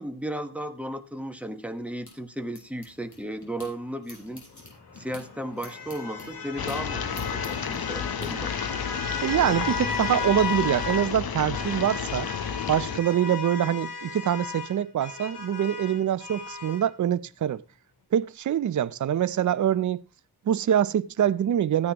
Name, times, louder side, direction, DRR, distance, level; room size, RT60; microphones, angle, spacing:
voice 1, 0.0-4.4 4.9-8.5, right 1 dB, 5° right, 1.2 m, -35 dB
sound 1, 1.4-3.7 4.0-8.3, left 3 dB, 45° left, 5.7 m, -48 dB
sound 2, 4.5-11.2 11.5-16.9, left 5 dB, 80° left, 3.2 m, -35 dB
sound 3, 6.6-13.0, left 7 dB, 65° left, 0.9 m, -32 dB
voice 2, 9.2-12.3 12.7-17.6 18.1-20.0 20.5-21.9, right 10 dB, 50° right, 0.5 m, -25 dB
15.0 x 9.6 x 3.0 m
wide cardioid pair, 95°, 39 cm